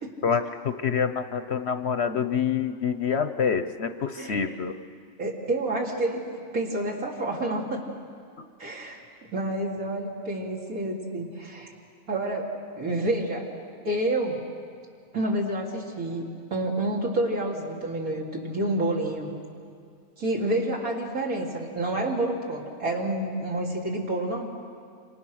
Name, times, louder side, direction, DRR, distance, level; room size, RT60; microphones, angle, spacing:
voice 1, 0.2-4.7, left 7 dB, 55° left, 9 dB, 0.9 m, -26 dB
voice 2, 4.2-4.5 5.2-6.3 6.5-7.9 8.6-11.7 12.1-12.5 12.8-13.5 13.8-14.4 15.1-19.3 20.2-24.4, right 1 dB, 70° right, -2 dB, 3.6 m, -29 dB
29.0 x 26.0 x 6.4 m, 2.2 s
omnidirectional pair, 1.5 m